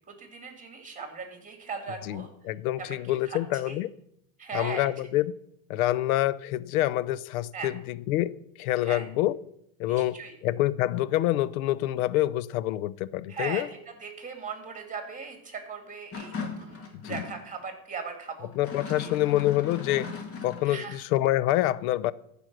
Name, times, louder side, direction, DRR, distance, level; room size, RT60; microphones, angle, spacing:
voice 1, 0.1-2.3 2.8-3.4 3.7-3.8 4.4-4.9 7.5-7.7 8.8-9.0 9.8-10.3 13.3-13.6 14.0-18.5 19.0-19.1 20.7-21.0, right 5 dB, 20° right, 2.4 m, -38 dB
voice 2, 2.1-3.9 4.5-5.3 5.7-9.4 9.8-13.7 16.9-17.2 18.6-20.1 20.4-22.1, left 15 dB, 85° left, 0.6 m, -27 dB
Bucket of Junk Shake, 16.1-17.4 18.5-20.8, left 4 dB, 35° left, 2.3 m, -38 dB
13.5 x 5.3 x 6.1 m
supercardioid pair, 120°, 41 cm